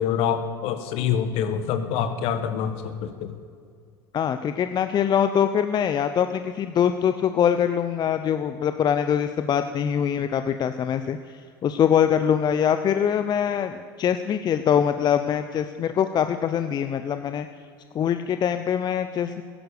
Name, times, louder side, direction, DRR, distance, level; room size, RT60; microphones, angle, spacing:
voice 1, 0.0-3.3, left 8 dB, 60° left, 10 dB, 1.5 m, -26 dB
voice 2, 4.1-17.5 17.9-19.4, left 8 dB, 35° left, 9 dB, 0.7 m, -23 dB
15.5 x 11.0 x 6.7 m, 2.2 s
hypercardioid pair, 75°, 12 cm